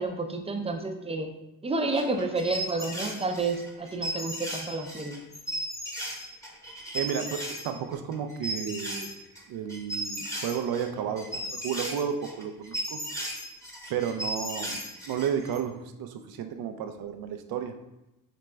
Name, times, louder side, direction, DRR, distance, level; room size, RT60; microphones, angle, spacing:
voice 1, 0.0-1.3 1.6-5.2, right 3 dB, 15° right, 4 dB, 0.4 m, -30 dB
sound 1, 1.9-7.7 7.9-9.4 9.7-15.6, equal, 10° left, 0.9 m, -36 dB
voice 2, 6.9-9.1 9.5-13.0 13.9-17.7, right 8 dB, 85° right, 7 dB, 0.5 m, -32 dB
5.0 x 3.1 x 2.2 m, 0.91 s
cardioid pair, 90°, 35 cm